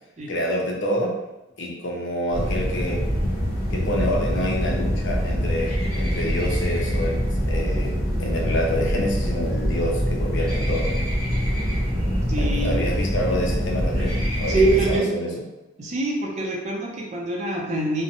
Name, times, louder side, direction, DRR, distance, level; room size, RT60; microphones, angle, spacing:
voice 1, 0.3-1.2 1.6-3.0 3.7-7.9 8.2-10.9 12.4-15.3, equal, 75° left, 0 dB, 0.5 m, -27 dB
sound 1, 2.3-15.0, equal, ahead, 0.9 m, -24 dB
voice 2, 12.3-12.8 14.5-15.2 15.8-18.0, right 2 dB, 40° right, -2 dB, 0.5 m, -24 dB
2.5 x 2.1 x 2.8 m, 0.97 s
head